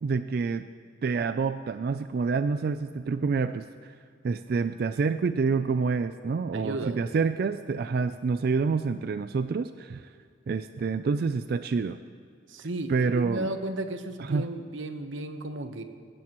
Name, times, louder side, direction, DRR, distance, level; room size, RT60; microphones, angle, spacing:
voice 1, 0.0-0.7 1.0-3.9 4.2-10.1 10.5-12.0 12.9-13.5 14.2-14.5, right 4 dB, 50° right, 11 dB, 0.3 m, -27 dB
voice 2, 6.5-7.1 12.5-15.8, right 2 dB, 80° right, 8 dB, 1.0 m, -34 dB
20.0 x 15.5 x 3.0 m, 2.3 s
head